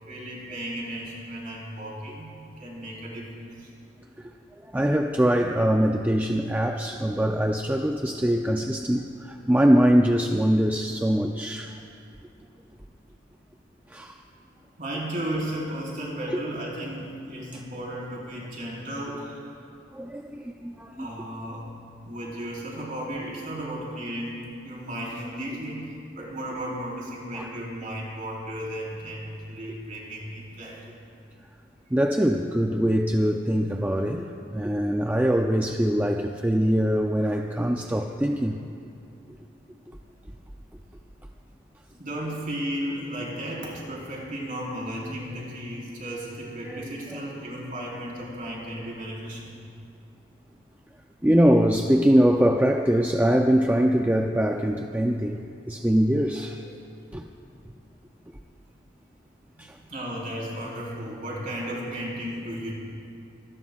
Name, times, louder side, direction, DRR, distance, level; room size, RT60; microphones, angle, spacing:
voice 1, 0.0-3.7 14.8-19.6 21.0-21.6 22.0-30.8 42.0-49.6 59.5-62.7, right 1 dB, 40° right, -4 dB, 4.2 m, -34 dB
voice 2, 4.7-11.7 13.9-14.1 19.9-21.1 27.3-27.5 31.9-38.6 46.7-46.8 51.2-56.6 57.1-57.2 59.6-59.8, equal, 10° right, 3 dB, 0.4 m, -23 dB
25.5 x 19.5 x 2.4 m, 2.5 s
head